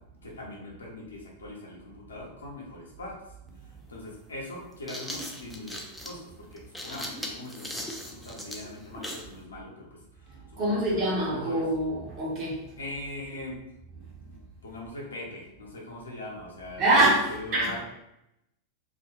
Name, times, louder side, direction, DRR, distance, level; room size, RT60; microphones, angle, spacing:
voice 1, 0.2-3.2 3.6-11.6 12.8-13.6 14.0-16.8 17.3-17.8, left 1 dB, 75° left, -3 dB, 0.7 m, -41 dB
sound 1, 3.5-3.6 4.6-9.3, equal, ahead, 0.4 m, -39 dB
voice 2, 10.6-12.7 16.8-17.7, right 1 dB, 40° right, -4 dB, 0.9 m, -25 dB
2.4 x 2.2 x 2.8 m, 0.85 s
figure-of-eight pair, 90°, 0 cm